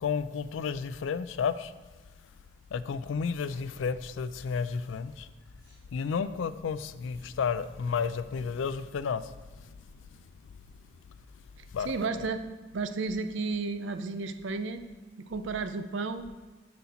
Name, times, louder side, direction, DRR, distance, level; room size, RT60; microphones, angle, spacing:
voice 1, 0.0-1.7 2.7-5.3 5.9-9.3 11.7-11.9, left 6 dB, 90° left, 0.3 m, -31 dB
sound 1, 3.4-6.2 6.7-8.8, left 1 dB, 15° left, 2.1 m, -56 dB
voice 2, 11.6-12.4 12.7-14.8 15.2-16.3, right 4 dB, 80° right, 0.5 m, -33 dB
9.4 x 4.2 x 4.2 m
head